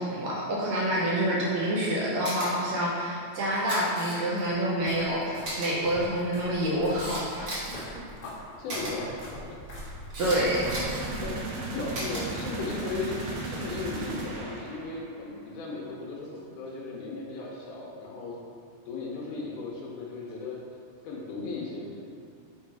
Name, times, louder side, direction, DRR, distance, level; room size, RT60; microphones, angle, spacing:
voice 1, 0.0-7.5 10.2-10.7, right 1 dB, 70° right, -5 dB, 1.7 m, -27 dB
Camera, 2.2-2.5 3.5-4.4 4.9-5.0 5.4-5.7 6.4-7.8 8.7-8.9 9.7-10.4 10.7-11.1 11.9-12.2 13.1-13.4, right 1 dB, 45° right, 2.0 m, -36 dB
sound 1, 4.4-11.7, equal, 40° left, 1.4 m, -43 dB
voice 2, 8.6-9.1 9.5-9.6 11.2-11.4 11.7-13.2 13.4-18.4 18.9-20.6 21.0-22.1, left 3 dB, 75° left, -3 dB, 2.2 m, -36 dB
sound 2, 10.4-15.1, right 2 dB, 90° right, 1.4 m, -35 dB
6.7 x 3.6 x 4.6 m, 2.4 s
omnidirectional pair, 3.8 m